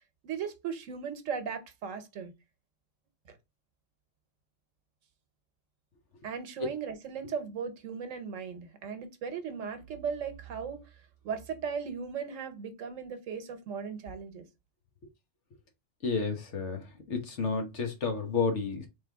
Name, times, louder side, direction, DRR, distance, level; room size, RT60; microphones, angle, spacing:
voice 1, 0.2-2.3 3.3-3.4 6.2-10.8 11.2-14.4, right 6 dB, 85° right, 1.2 m, -37 dB
voice 2, 16.0-18.9, left 4 dB, 70° left, 1.4 m, -31 dB
3.7 x 3.3 x 3.4 m
omnidirectional pair, 1.3 m